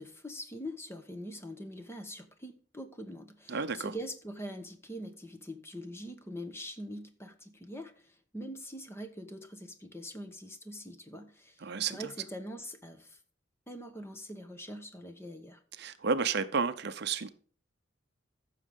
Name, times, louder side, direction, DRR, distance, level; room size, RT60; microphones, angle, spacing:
voice 1, 0.0-13.2 13.7-15.6, equal, 10° left, 7 dB, 1.1 m, -43 dB
voice 2, 3.5-3.9 11.6-12.1 15.8-17.3, right 5 dB, 55° right, 11 dB, 0.6 m, -31 dB
15.0 x 6.4 x 3.6 m, 0.42 s
head